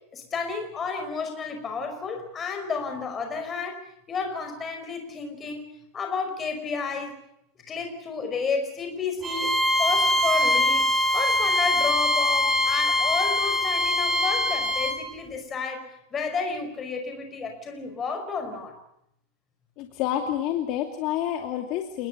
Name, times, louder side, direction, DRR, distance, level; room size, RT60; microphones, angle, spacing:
voice 1, 0.1-3.8 4.1-5.6 5.9-7.2 7.7-18.8, left 5 dB, 15° left, 5 dB, 5.3 m, -31 dB
Bowed string instrument, 9.2-15.0, left 1 dB, 15° right, 3.9 m, -23 dB
voice 2, 19.8-22.1, left 11 dB, 40° left, 4 dB, 2.6 m, -28 dB
29.0 x 20.0 x 6.8 m, 0.76 s
supercardioid pair, 175°, 0 cm